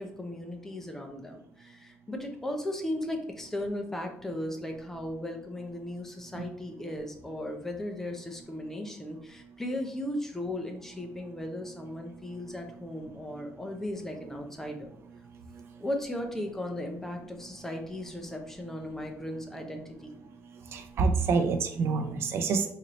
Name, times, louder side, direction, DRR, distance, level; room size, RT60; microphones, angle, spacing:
voice 1, 0.0-14.9 15.8-20.1, left 1 dB, 10° left, 3 dB, 0.6 m, -36 dB
voice 2, 20.7-22.7, right 4 dB, 65° right, 7 dB, 0.5 m, -27 dB
4.1 x 2.7 x 3.1 m, 0.70 s
cardioid pair, 130°, 5 cm